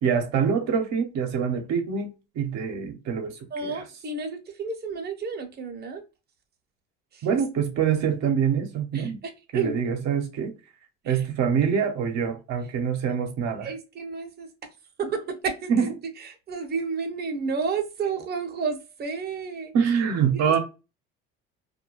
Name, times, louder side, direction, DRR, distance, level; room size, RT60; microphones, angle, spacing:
voice 1, 0.0-3.7 7.2-9.2 9.5-10.5 11.0-13.7 15.7-15.8 19.7-20.6, right 7 dB, 60° right, 0.9 m, -25 dB
voice 2, 3.5-6.0 7.1-7.4 8.9-9.9 11.0-11.3 13.6-14.5 15.0-19.7 20.3-20.6, right 5 dB, 35° right, 0.9 m, -31 dB
2.4 x 2.1 x 3.1 m
supercardioid pair, 80°, 30 cm